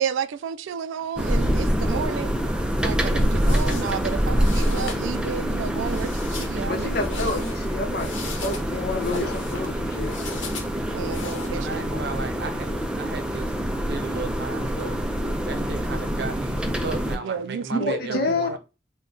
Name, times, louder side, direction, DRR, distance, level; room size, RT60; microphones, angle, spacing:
voice 1, 0.0-2.3 2.8-7.2 10.9-11.9 17.1-18.6, right 7 dB, 85° right, 0.3 m, -31 dB
sound 1, 1.1-17.2, equal, 5° right, 0.4 m, -26 dB
sound 2, 3.1-11.5, left 4 dB, 80° left, 0.9 m, -39 dB
voice 2, 6.6-10.1 17.7-18.6, left 3 dB, 55° left, 0.8 m, -28 dB
voice 3, 11.5-13.6 13.9-15.0 15.5-18.6, right 4 dB, 60° right, 0.7 m, -35 dB
3.6 x 2.2 x 3.7 m
head